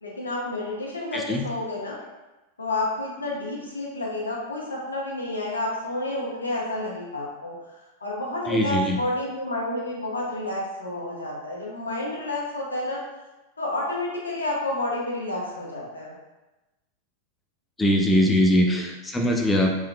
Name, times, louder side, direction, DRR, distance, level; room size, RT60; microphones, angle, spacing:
voice 1, 0.0-2.0 2.6-7.5 8.0-13.0 13.6-16.1 18.6-18.8, left 1 dB, 80° left, -3 dB, 1.2 m, -30 dB
voice 2, 1.1-1.4 8.5-9.0 17.8-19.7, left 1 dB, 10° left, 1 dB, 0.6 m, -21 dB
6.2 x 3.7 x 2.2 m, 1.1 s
figure-of-eight pair, 90°, 0 cm